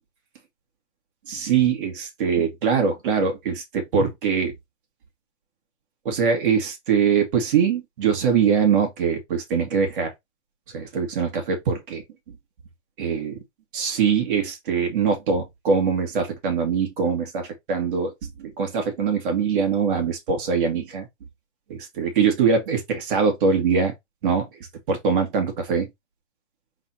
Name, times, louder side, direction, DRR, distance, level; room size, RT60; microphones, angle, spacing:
voice 1, 1.3-4.5 6.0-10.1 10.7-12.4 13.0-13.4 13.7-21.1 21.7-23.9 24.2-24.5 24.9-25.9, right 6 dB, 45° right, 2.0 m, -23 dB
4.0 x 2.7 x 4.4 m
hypercardioid pair, 160°, 36 cm